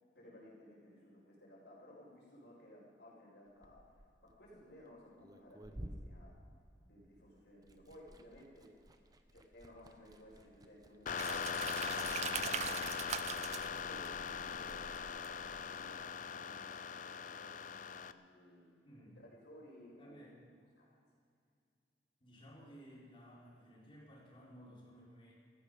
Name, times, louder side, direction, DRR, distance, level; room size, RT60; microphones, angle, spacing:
voice 1, 0.1-3.8 4.2-6.3 6.8-8.7 9.3-18.7 19.2-20.2 20.8-20.9, left 1 dB, 70° left, -10 dB, 5.2 m, -58 dB
Liquid, 3.5-7.2 7.4-15.0, right 1 dB, 20° right, 0.9 m, -55 dB
sound 1, 11.1-18.1, left 6 dB, 50° left, 0.5 m, -40 dB
sound 2, 11.2-15.8, right 9 dB, 40° right, 0.4 m, -43 dB
voice 2, 18.8-19.2 20.0-20.5 22.2-25.3, equal, 30° left, -5 dB, 4.6 m, -56 dB
17.5 x 15.0 x 5.1 m, 2.3 s
head